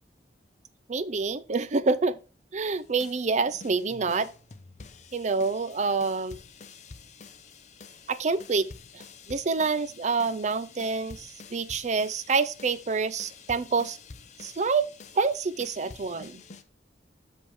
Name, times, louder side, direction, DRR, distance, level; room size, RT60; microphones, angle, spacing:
voice 1, 0.9-2.2 2.5-4.3 5.1-6.4 8.1-8.7 8.9-14.0 14.4-14.9 15.1-16.4, right 4 dB, 40° right, 0.5 m, -27 dB
sound 1, 2.6-16.6, left 4 dB, 45° left, 0.6 m, -49 dB
6.3 x 5.4 x 4.7 m
head